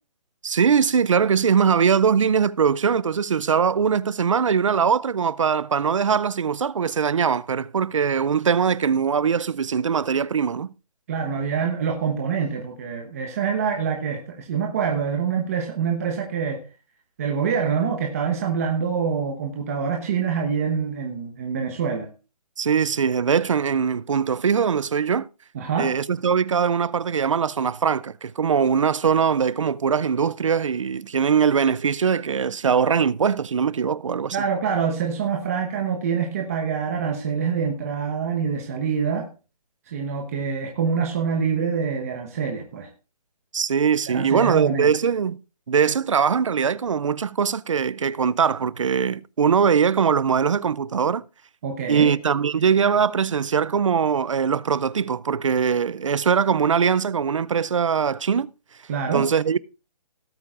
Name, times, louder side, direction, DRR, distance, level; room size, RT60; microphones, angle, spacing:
voice 1, 0.4-10.7 22.6-25.3 25.8-34.4 43.5-45.4 45.7-51.2 51.9-58.5 59.1-59.6, right 6 dB, 50° right, 0.4 m, -21 dB
voice 2, 11.1-16.6 17.2-22.1 25.5-25.9 34.3-39.3 39.9-42.9 44.1-44.9 51.6-52.2 58.9-59.2, right 6 dB, 20° right, 1.1 m, -25 dB
17.5 x 8.4 x 2.5 m
hypercardioid pair, 170°, 21 cm